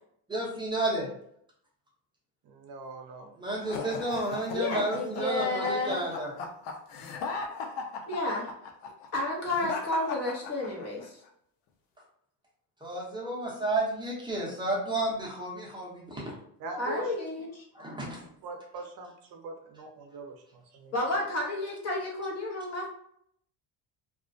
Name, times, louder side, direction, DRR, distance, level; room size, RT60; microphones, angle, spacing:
voice 1, 0.3-1.1 3.4-6.3 12.8-16.3 17.7-18.3, right 2 dB, 10° right, -4 dB, 0.6 m, -31 dB
voice 2, 2.4-3.3 16.6-17.1 18.4-20.9, right 2 dB, 55° right, 3 dB, 0.5 m, -41 dB
sound 1, 3.6-11.1, left 4 dB, 85° left, 0.6 m, -37 dB
voice 3, 4.5-6.0 8.1-8.5 9.1-11.2 16.7-17.6 20.9-22.9, left 2 dB, 40° left, -2 dB, 0.8 m, -31 dB
2.4 x 2.1 x 2.5 m, 0.68 s
cardioid pair, 130°, 42 cm